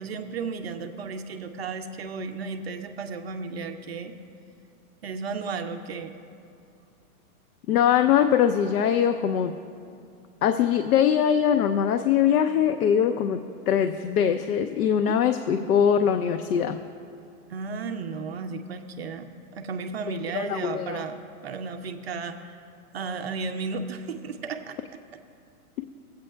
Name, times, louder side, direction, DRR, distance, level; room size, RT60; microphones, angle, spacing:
voice 1, 0.0-4.2 5.0-6.1 15.0-15.8 17.5-22.6 22.9-25.0, right 4 dB, 45° right, 7 dB, 0.4 m, -34 dB
voice 2, 7.7-9.5 10.4-13.4 13.7-16.8 20.1-21.0, left 8 dB, 75° left, 8 dB, 0.6 m, -22 dB
19.0 x 8.3 x 2.2 m, 2.4 s
hypercardioid pair, 165°, 45 cm